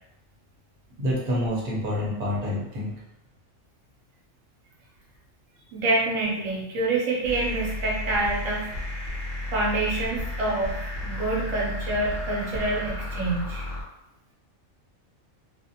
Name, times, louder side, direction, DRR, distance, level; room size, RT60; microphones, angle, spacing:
voice 1, 1.0-2.9, left 1 dB, 45° right, -5 dB, 0.8 m, -27 dB
voice 2, 5.7-8.7 9.5-13.6, right 2 dB, 75° right, -4 dB, 1.0 m, -27 dB
sound 1, 7.2-13.8, left 1 dB, 50° left, 0.8 m, -33 dB
2.4 x 2.1 x 2.6 m, 0.82 s
omnidirectional pair, 1.4 m